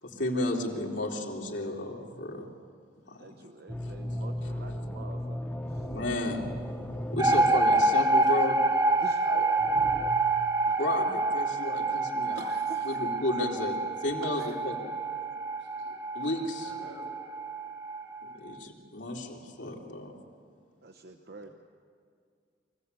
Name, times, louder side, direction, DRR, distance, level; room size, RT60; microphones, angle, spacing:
voice 1, 0.0-2.5 3.1-3.2 5.9-6.4 7.1-8.6 9.3-9.4 10.8-12.4 12.8-14.8 16.1-16.7 18.4-20.1, left 1 dB, 75° left, -1 dB, 3.0 m, -33 dB
voice 2, 3.2-5.4 5.7-5.9 7.2-7.4 9.0-9.2 10.7-10.8 12.3-13.0 14.4-14.6 20.8-21.5, right 3 dB, 60° right, 5 dB, 0.9 m, -46 dB
sound 1, 3.7-7.9 9.6-10.1, equal, 10° left, 1.1 m, -36 dB
sound 2, 7.2-18.4, right 2 dB, 20° right, 1.0 m, -27 dB
voice 3, 15.6-16.3 16.6-17.1 21.4-21.5, equal, 90° right, 0 dB, 7.0 m, -51 dB
24.0 x 16.5 x 8.2 m, 2.1 s
head